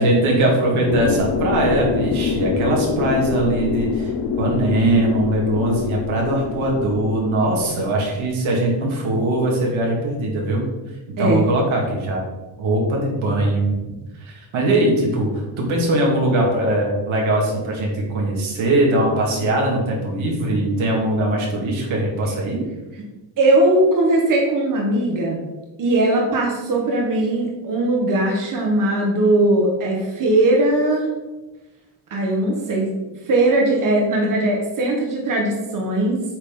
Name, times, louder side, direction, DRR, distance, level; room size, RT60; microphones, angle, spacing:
voice 1, 0.0-4.1 4.4-10.7 11.2-12.2 12.6-13.8 14.2-15.3 15.6-22.6, right 1 dB, 75° right, -1 dB, 2.1 m, -20 dB
sound 1, 0.9-8.3, left 5 dB, 55° left, 0.7 m, -25 dB
voice 2, 23.4-25.4 25.8-31.1 32.1-32.9 33.2-36.2, right 2 dB, 40° right, -1 dB, 1.3 m, -19 dB
8.0 x 3.9 x 3.8 m, 1.1 s
cardioid pair, 125°, 48 cm